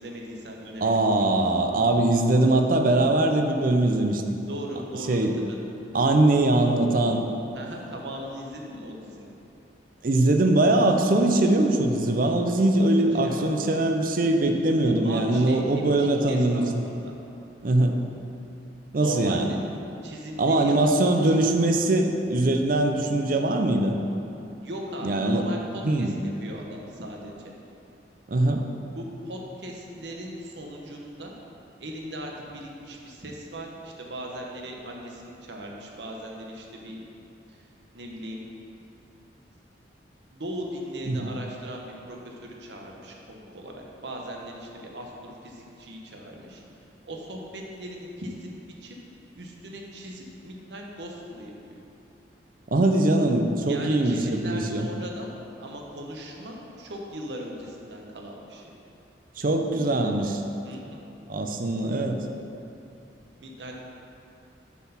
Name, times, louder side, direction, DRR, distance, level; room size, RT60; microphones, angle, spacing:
voice 1, 0.0-1.5 4.4-5.6 7.5-9.3 12.8-13.6 14.8-15.6 16.0-17.1 18.9-19.6 20.0-21.4 24.6-26.1 26.4-27.5 28.9-31.3 31.8-37.0 37.5-37.7 37.9-38.5 40.3-46.6 47.0-48.5 48.8-49.0 49.3-51.8 53.6-55.3 55.6-58.7 60.6-61.0 63.4-63.8, right 1 dB, 75° right, 0 dB, 1.0 m, -39 dB
voice 2, 0.8-4.2 5.1-5.3 5.9-7.3 10.0-16.6 17.6-18.0 18.9-19.5 20.4-24.0 25.0-25.5 25.8-26.1 28.3-28.6 41.1-41.3 52.7-54.9 59.4-60.4 61.3-62.2, right 2 dB, 50° right, 4 dB, 0.6 m, -22 dB
6.9 x 4.7 x 5.7 m, 2.8 s
head